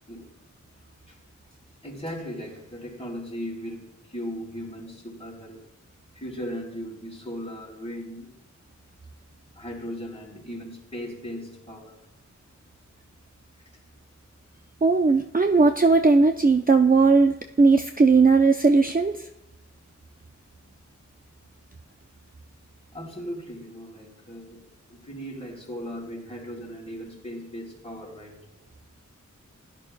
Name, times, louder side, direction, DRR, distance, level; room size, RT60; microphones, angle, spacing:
voice 1, 1.8-5.7 6.1-8.3 9.6-12.0 13.6-13.7 22.9-28.4, equal, 20° left, -2 dB, 4.1 m, -37 dB
voice 2, 14.8-19.1, right 4 dB, 30° right, 5 dB, 0.5 m, -18 dB
16.0 x 12.0 x 2.3 m, 0.82 s
wide cardioid pair, 60°, 30 cm